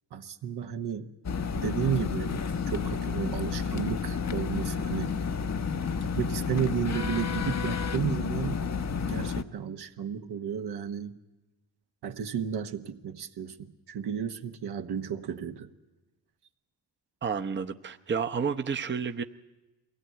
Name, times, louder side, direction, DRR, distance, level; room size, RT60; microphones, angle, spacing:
voice 1, 0.1-1.1 1.5-5.1 6.0-8.6 9.0-11.2 12.0-13.6 13.9-15.7, right 8 dB, 70° right, 7 dB, 1.3 m, -33 dB
sound 1, 1.2-9.4, left 6 dB, 40° left, 1.0 m, -31 dB
voice 2, 17.2-19.2, right 6 dB, 25° right, 8 dB, 0.9 m, -30 dB
22.0 x 17.0 x 9.2 m, 1.1 s
supercardioid pair, 55°, 41 cm